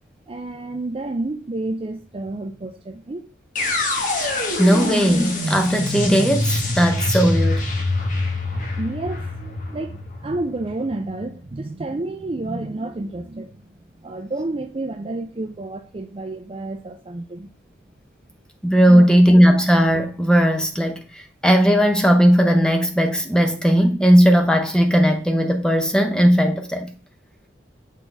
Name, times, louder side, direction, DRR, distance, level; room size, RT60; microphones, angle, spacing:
voice 1, 0.3-3.3 8.8-13.6 14.0-17.5 18.9-19.1, right 2 dB, 30° right, 0.4 m, -30 dB
sound 1, 3.6-11.5, left 2 dB, 45° left, 1.2 m, -25 dB
voice 2, 4.6-7.7 18.6-26.9, equal, 5° left, 0.7 m, -17 dB
7.2 x 4.3 x 3.4 m
head